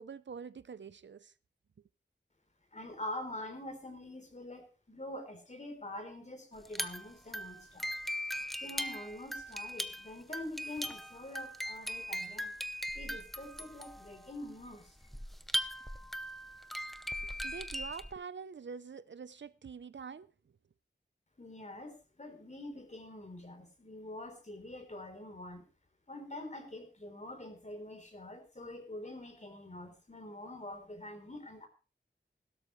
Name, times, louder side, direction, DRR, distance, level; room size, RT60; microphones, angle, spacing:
voice 1, 0.0-1.3 17.2-20.3, right 6 dB, 80° right, 0.6 m, -45 dB
voice 2, 2.7-7.9 8.3-12.5 12.9-14.9 21.4-25.7 26.1-31.7, left 1 dB, 40° left, 3.6 m, -45 dB
sound 1, 6.6-18.1, equal, ahead, 0.8 m, -39 dB
16.5 x 12.5 x 3.2 m
wide cardioid pair, 70°, 19 cm